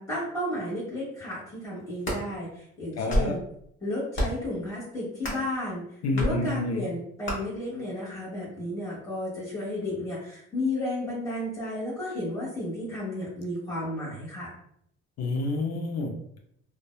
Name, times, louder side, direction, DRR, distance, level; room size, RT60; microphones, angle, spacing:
voice 1, 0.0-3.4 3.8-5.8 6.1-14.5, left 1 dB, 10° left, -9 dB, 1.1 m, -33 dB
sound 1, 1.8-2.2 2.9-3.4 4.1-4.5 5.2-5.5 6.2-6.3 7.2-7.4, equal, 40° left, 1.1 m, -28 dB
voice 2, 3.0-3.4 6.0-6.8 15.2-16.4, left 2 dB, 60° left, 3 dB, 0.5 m, -29 dB
2.6 x 2.1 x 2.2 m, 0.70 s
cardioid pair, 90°, 30 cm